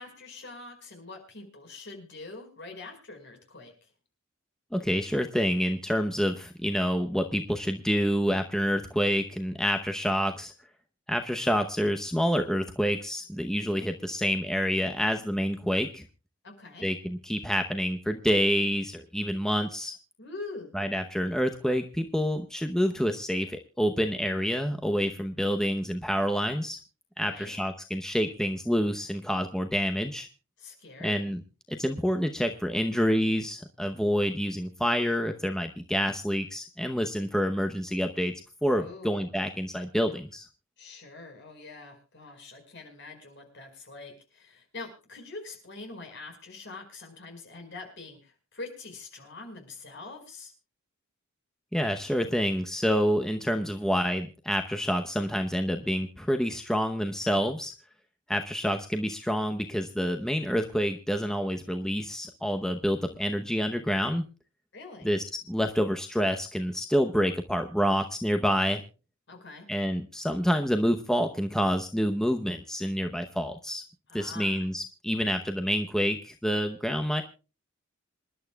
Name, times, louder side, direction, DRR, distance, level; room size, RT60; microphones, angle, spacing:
voice 1, 0.0-3.7 16.4-16.9 20.2-20.7 27.2-27.6 30.6-31.2 38.8-39.3 40.8-50.5 64.7-65.1 69.3-69.7 74.1-74.7, left 3 dB, 55° left, 3 dB, 4.9 m, -44 dB
voice 2, 4.7-10.5 11.1-16.0 16.8-19.9 20.7-26.8 27.2-30.3 31.0-31.4 31.7-38.3 38.6-40.5 51.7-57.7 58.3-64.2 65.0-68.8 69.7-73.8 74.1-77.2, equal, 5° left, 5 dB, 0.8 m, -28 dB
27.0 x 11.5 x 2.3 m, 0.32 s
head